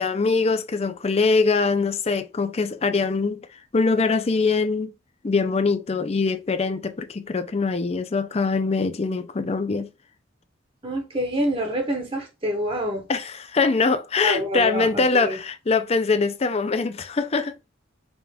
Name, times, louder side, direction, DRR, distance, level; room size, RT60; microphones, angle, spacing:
voice 1, 0.0-3.4 3.7-4.9 5.2-9.9 13.1-17.5, left 4 dB, 30° left, 0.4 m, -23 dB
voice 2, 10.8-13.1 14.2-15.4, equal, 30° right, 0.8 m, -27 dB
5.3 x 2.4 x 3.4 m
head